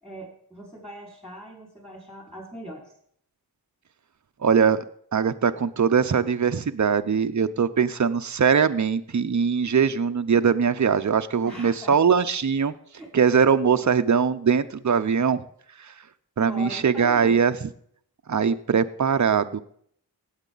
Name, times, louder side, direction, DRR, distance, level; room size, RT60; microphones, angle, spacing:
voice 1, 0.0-2.9 11.4-11.9 12.9-13.1 16.5-17.4, equal, ahead, -1 dB, 4.8 m, -40 dB
voice 2, 4.4-4.8 5.1-12.7 13.1-15.4 15.8-15.9 16.4-17.5 18.3-19.6, right 6 dB, 45° right, 11 dB, 0.6 m, -21 dB
17.5 x 8.1 x 4.0 m, 0.64 s
wide cardioid pair, 55°, 40 cm